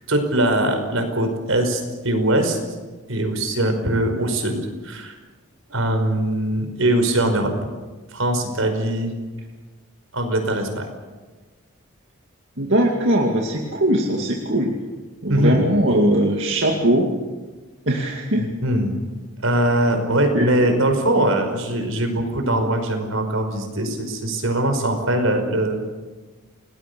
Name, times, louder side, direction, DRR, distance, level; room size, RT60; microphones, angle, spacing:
voice 1, 0.1-2.6 3.1-5.1 5.7-7.5 8.1-9.1 10.1-10.9 15.3-15.6 18.4-19.0 19.4-25.9, right 1 dB, 80° right, 6 dB, 5.2 m, -21 dB
voice 2, 12.6-14.7 15.2-17.1 17.9-18.5 20.3-20.5, right 1 dB, 60° right, 0 dB, 2.4 m, -20 dB
29.5 x 19.5 x 6.9 m, 1.3 s
head